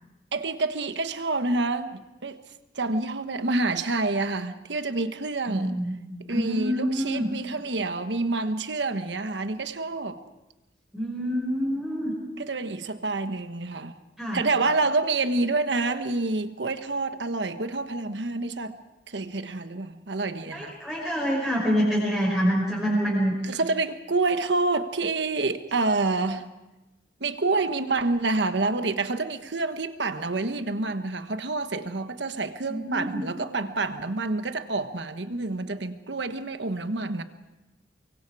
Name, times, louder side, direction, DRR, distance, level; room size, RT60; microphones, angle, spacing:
voice 1, 0.3-2.4 2.7-5.8 6.3-10.2 12.4-14.0 14.3-18.8 19.1-20.7 23.4-26.4 27.2-37.2, right 3 dB, 90° right, 1.3 m, -28 dB
voice 2, 5.5-6.0 6.3-7.3 10.9-12.1 14.2-14.4 20.5-23.6 32.7-33.3, equal, 5° right, 5.7 m, -26 dB
24.0 x 24.0 x 4.9 m
head